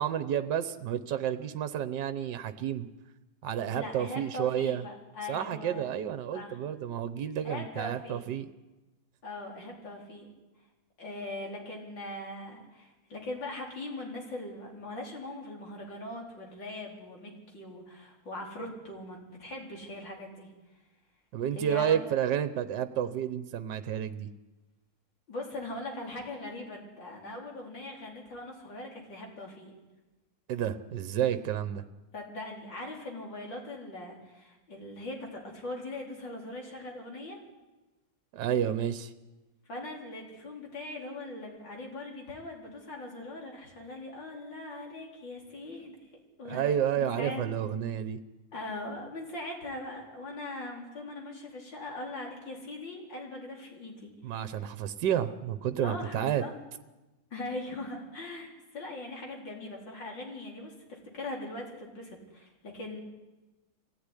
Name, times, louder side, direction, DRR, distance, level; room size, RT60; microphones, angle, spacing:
voice 1, 0.0-2.9 3.4-4.8 5.3-8.5 21.3-24.3 30.5-31.8 38.3-39.1 46.5-48.2 54.2-56.4, right 9 dB, 70° right, 12 dB, 1.5 m, -30 dB
voice 2, 3.7-5.9 6.3-6.6 7.4-8.3 9.2-10.3 11.0-20.5 21.5-22.0 25.3-29.7 32.1-37.4 39.7-46.7 47.0-47.4 48.5-54.6 55.8-56.5 57.3-63.0, left 2 dB, 75° left, -1 dB, 4.8 m, -40 dB
23.0 x 15.5 x 9.9 m, 1.1 s
omnidirectional pair, 2.0 m